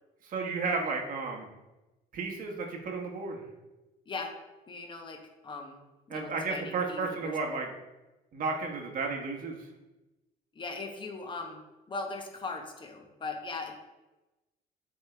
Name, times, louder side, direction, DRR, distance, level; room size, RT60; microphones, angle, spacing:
voice 1, 0.2-1.5 2.1-3.4 6.1-7.7 8.3-9.7, right 4 dB, 55° right, 1 dB, 1.2 m, -33 dB
voice 2, 4.7-5.2 5.4-5.8 6.1-7.4 10.5-11.6 11.9-13.7, left 3 dB, 30° left, 3 dB, 1.0 m, -39 dB
7.7 x 3.7 x 3.4 m, 1.0 s
cardioid pair, 110°, 17 cm